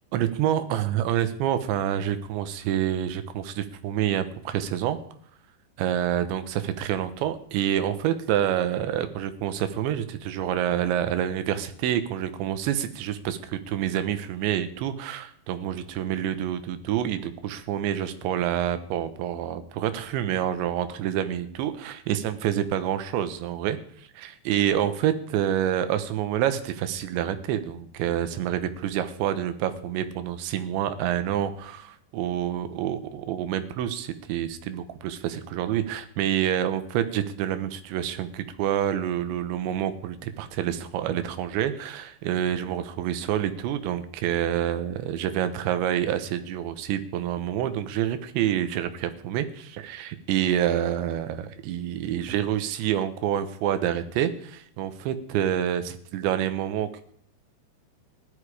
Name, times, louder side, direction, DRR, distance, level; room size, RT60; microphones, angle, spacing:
voice 1, 0.1-5.0 5.8-23.8 24.2-57.0, right 10 dB, 85° right, 10 dB, 3.4 m, -27 dB
16.0 x 12.0 x 4.9 m, 0.62 s
omnidirectional pair, 5.1 m